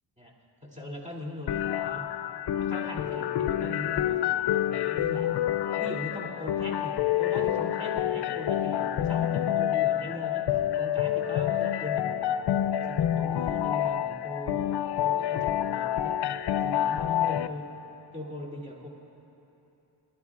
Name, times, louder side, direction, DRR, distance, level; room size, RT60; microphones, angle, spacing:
voice 1, 0.6-2.1 2.5-5.3 5.8-10.4 10.7-12.4 12.9-16.1 16.6-17.7 18.1-18.9, left 1 dB, 15° right, -3 dB, 2.6 m, -40 dB
sound 1, 1.5-17.5, left 11 dB, 65° left, 0.5 m, -28 dB
23.0 x 11.5 x 2.4 m, 3.0 s
cardioid pair, 55°, 43 cm